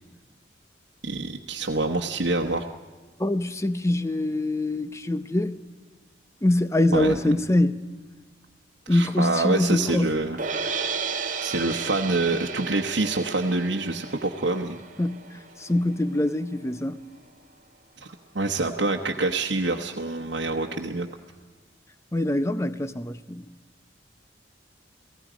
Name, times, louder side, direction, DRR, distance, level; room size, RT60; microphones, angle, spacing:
voice 1, 1.0-2.6 6.9-7.2 8.9-10.4 11.4-14.8 18.3-21.1, right 2 dB, 85° right, 1.1 m, -26 dB
voice 2, 3.2-5.6 6.4-7.8 8.9-10.1 15.0-15.3 15.6-17.0 22.1-23.4, left 1 dB, 15° left, 0.7 m, -24 dB
sound 1, 10.4-16.5, right 5 dB, 45° right, 1.2 m, -34 dB
29.5 x 18.0 x 5.1 m
head